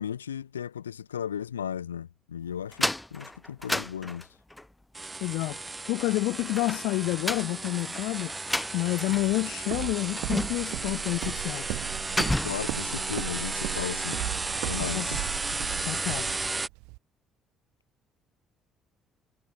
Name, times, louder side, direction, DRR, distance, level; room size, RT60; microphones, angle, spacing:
voice 1, 0.0-4.3 12.4-14.2 14.7-15.3, left 8 dB, 90° left, 5.3 m, -35 dB
sound 1, 2.7-4.6 6.4-9.4 9.6-9.7 10.2-10.8 11.2-11.4 11.7-12.7, left 1 dB, 10° left, 2.3 m, -32 dB
sound 2, 4.9-16.7, right 3 dB, 25° right, 1.4 m, -34 dB
voice 2, 5.2-5.6 5.9-8.3 8.7-11.8 14.8-15.2 15.8-16.3, left 21 dB, 70° left, 3.4 m, -29 dB
Walk footsteps, 9.1-17.0, right 30 dB, 75° right, 1.4 m, -37 dB
hypercardioid pair, 50°, 0 cm